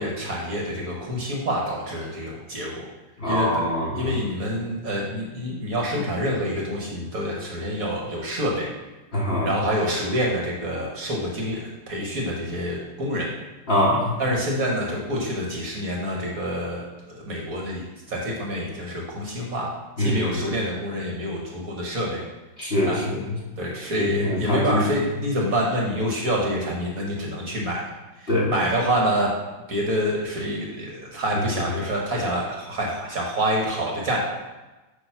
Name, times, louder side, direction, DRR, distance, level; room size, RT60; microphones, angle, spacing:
voice 1, 0.0-2.9 3.3-3.6 4.0-8.7 9.4-13.3 14.2-19.7 20.0-22.2 22.8-23.0 23.6-27.8 28.2-29.3 29.7-34.2, equal, 50° right, -2 dB, 1.3 m, -27 dB
voice 2, 3.2-4.1 9.1-9.5 13.7-14.1 20.0-20.4 22.6-23.2 24.0-24.8 28.3-28.5, left 1 dB, 35° left, -5 dB, 1.1 m, -23 dB
8.3 x 3.0 x 5.7 m, 1.1 s
omnidirectional pair, 2.4 m